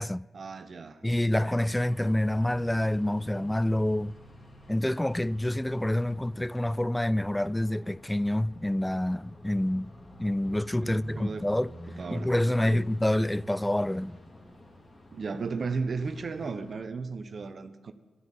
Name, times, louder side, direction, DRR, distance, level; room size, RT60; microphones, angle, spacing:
voice 1, 0.3-1.5 10.8-11.5 12.0-12.8 15.1-17.9, right 4 dB, 55° right, 1.0 m, -35 dB
voice 2, 1.0-4.1 4.7-9.9 10.2-11.7 12.1-14.2, left 1 dB, 10° left, 0.4 m, -27 dB
sound 1, 1.4-16.7, left 1 dB, 40° left, 3.7 m, -49 dB
13.0 x 12.5 x 8.4 m
cardioid pair, 55°, 0 cm